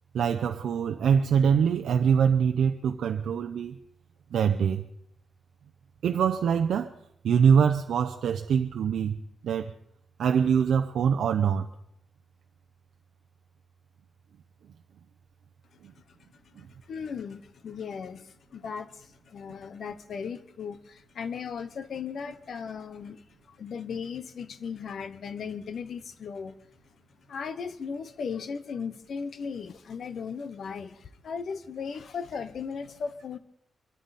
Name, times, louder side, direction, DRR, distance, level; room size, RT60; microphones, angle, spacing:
voice 1, 0.1-3.8 4.3-4.9 6.0-7.0 7.2-9.2 9.4-9.7 10.2-11.7 15.8-15.9, right 7 dB, 75° right, 0.7 m, -24 dB
voice 2, 16.6-26.6 27.3-33.4, left 6 dB, 55° left, 0.9 m, -37 dB
24.0 x 13.0 x 4.2 m
wide cardioid pair, 165°, 0 cm